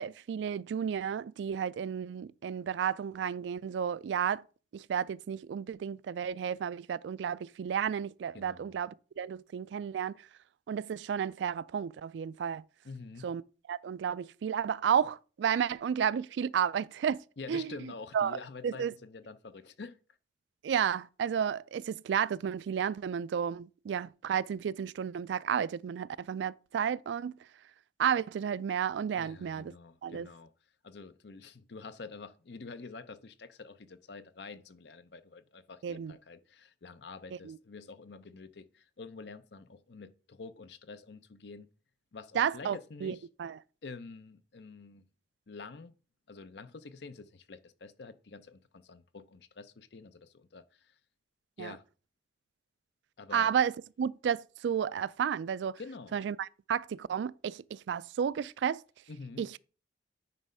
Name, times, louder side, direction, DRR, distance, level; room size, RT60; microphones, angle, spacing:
voice 1, 0.0-4.4 4.7-10.2 10.7-12.6 13.2-13.4 13.7-17.2 17.5-18.4 18.6-18.9 20.6-27.4 28.0-29.7 30.0-30.3 35.8-36.1 37.4-37.6 42.3-43.6 51.6-51.8 53.3-53.7 54.0-55.8 56.1-58.8 59.4-59.6, right 8 dB, 75° right, 0.3 m, -32 dB
voice 2, 8.3-8.8 12.8-13.3 17.4-20.0 29.2-30.5 30.8-41.7 42.1-43.3 43.8-45.0 45.5-45.9 46.3-50.9 51.6-51.8 53.2-53.5 55.8-56.2 59.1-59.5, left 4 dB, 65° left, 0.6 m, -47 dB
9.5 x 3.2 x 5.4 m
head